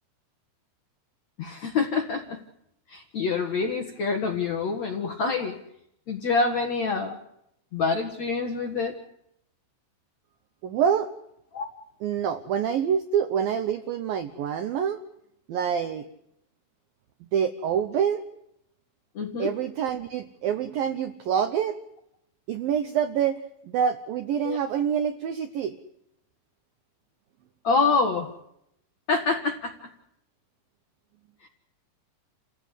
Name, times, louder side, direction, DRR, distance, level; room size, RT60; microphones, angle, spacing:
voice 1, 1.4-2.4 2.9-5.6 6.1-7.2 7.7-9.0 11.5-11.7 19.2-19.5 24.4-24.6 27.6-28.3 29.1-29.7, left 4 dB, 60° left, 3 dB, 1.9 m, -26 dB
voice 2, 10.6-11.1 12.0-15.0 15.5-16.1 17.3-18.2 19.4-21.8 22.5-23.4 23.6-25.7, right 8 dB, 80° right, 9 dB, 2.1 m, -26 dB
29.0 x 16.0 x 8.2 m, 0.79 s
omnidirectional pair, 5.5 m